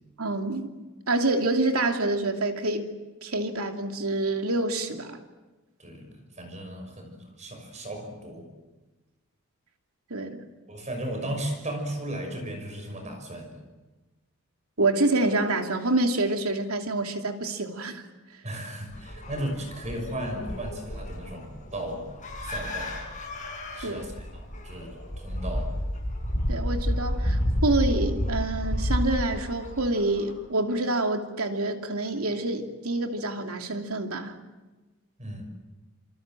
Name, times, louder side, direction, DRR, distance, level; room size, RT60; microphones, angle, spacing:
voice 1, 0.2-0.7 1.1-2.8 3.2-5.2 10.1-10.5 14.8-18.0 23.8-24.0 26.5-34.4, right 2 dB, 80° right, 4 dB, 2.7 m, -27 dB
voice 2, 5.8-8.5 10.7-13.6 18.4-22.1 22.4-23.1 23.7-25.7 35.2-35.4, right 1 dB, 30° right, 4 dB, 6.0 m, -36 dB
sound 1, 18.9-30.3, equal, 35° left, 7.1 m, -31 dB
27.5 x 26.0 x 7.7 m, 1.2 s
head